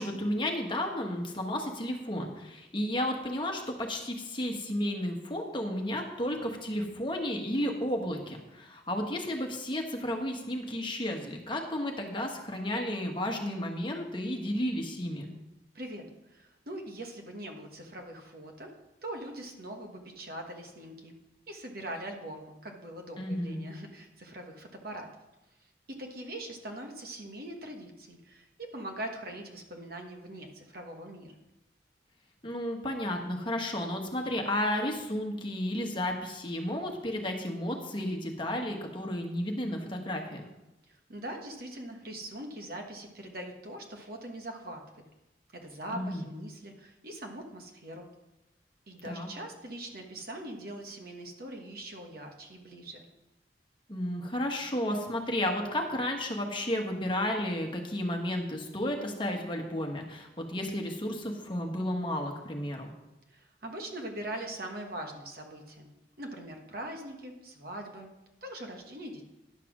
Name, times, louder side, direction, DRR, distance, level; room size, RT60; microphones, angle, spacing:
voice 1, 0.0-15.3 23.2-23.6 32.4-40.4 45.9-46.2 49.0-49.3 53.9-62.9, left 1 dB, 25° left, 2 dB, 1.3 m, -32 dB
voice 2, 15.7-18.7 19.0-21.2 21.5-25.1 25.9-31.3 40.9-44.8 45.5-48.1 48.9-53.0 63.3-68.1 68.4-69.2, right 1 dB, 55° right, 3 dB, 1.4 m, -42 dB
10.5 x 5.9 x 6.1 m, 0.95 s
head